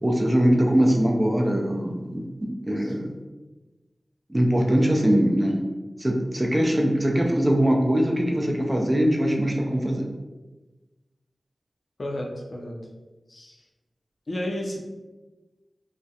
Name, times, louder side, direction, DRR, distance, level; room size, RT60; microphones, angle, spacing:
voice 1, 0.0-3.1 4.3-5.6 6.0-10.1, equal, 20° right, 0 dB, 0.3 m, -22 dB
voice 2, 12.0-12.8 13.3-13.6 14.3-14.8, left 1 dB, 50° left, 0 dB, 0.4 m, -32 dB
2.3 x 2.0 x 2.7 m, 1.2 s
wide cardioid pair, 85°, 0 cm